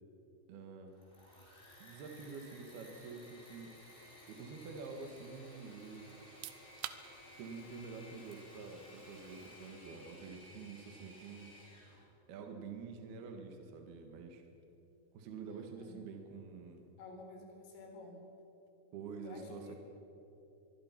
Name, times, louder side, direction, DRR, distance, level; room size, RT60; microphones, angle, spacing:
voice 1, 0.5-0.9 1.8-3.7 4.3-6.1 7.4-11.5 12.3-14.4 15.1-16.8 18.9-19.7, right 4 dB, 60° right, 4 dB, 3.2 m, -47 dB
Engine / Mechanisms, 0.8-12.0, left 1 dB, 10° left, 5.0 m, -57 dB
sound 1, 6.2-18.8, right 13 dB, 85° right, 3.4 m, -57 dB
voice 2, 15.5-16.0 17.0-18.2 19.2-19.8, left 2 dB, 80° left, 2 dB, 6.4 m, -52 dB
24.5 x 24.0 x 5.9 m, 2.9 s
omnidirectional pair, 5.7 m